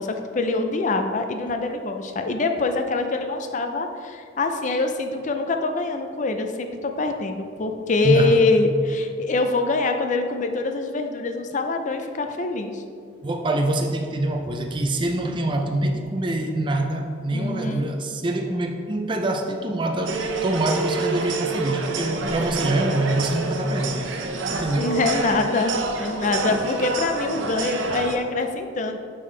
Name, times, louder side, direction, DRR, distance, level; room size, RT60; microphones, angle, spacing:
voice 1, 0.0-12.8 17.3-17.9 24.7-29.0, left 3 dB, 40° left, 6 dB, 0.4 m, -24 dB
voice 2, 8.0-8.4 13.2-24.0 24.5-25.0 26.5-26.6, right 2 dB, 25° right, 3 dB, 0.4 m, -25 dB
sound 1, 20.1-28.2, right 3 dB, 80° right, 0.6 m, -28 dB
6.8 x 5.3 x 3.2 m, 2.3 s
head